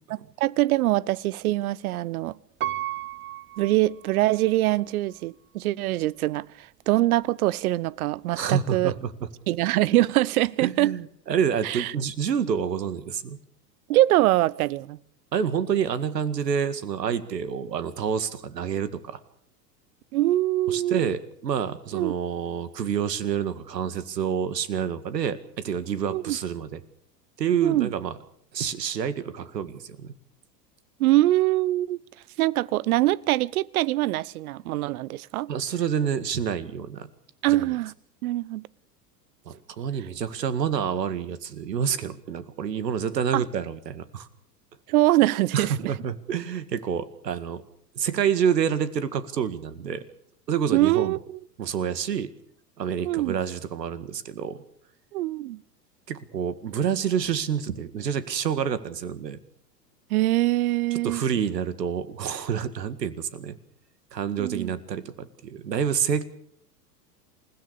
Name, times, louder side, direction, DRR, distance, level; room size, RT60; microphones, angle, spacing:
voice 1, 0.1-2.4 3.6-8.9 9.5-10.9 11.6-11.9 13.9-15.0 20.1-21.1 21.9-22.1 26.1-26.4 27.6-27.9 31.0-32.0 32.4-35.5 37.4-37.9 38.2-38.6 43.3-43.4 44.9-45.9 50.7-51.2 53.0-53.4 55.1-55.6 60.1-61.2 64.4-64.7, right 16 dB, 60° right, 1.0 m, -23 dB
Piano, 2.6-4.6 5.1-5.2, right 13 dB, 25° right, 0.9 m, -34 dB
voice 2, 8.3-9.1 10.6-13.4 15.3-19.2 20.7-26.8 27.4-28.1 28.5-30.1 35.5-37.1 37.5-37.7 39.5-44.3 45.5-47.6 48.0-50.0 50.5-51.2 51.6-52.3 52.8-54.6 56.1-59.4 61.0-63.6 64.1-66.2, right 8 dB, 75° right, 2.1 m, -28 dB
28.0 x 16.0 x 6.9 m
hypercardioid pair, 95°, 49 cm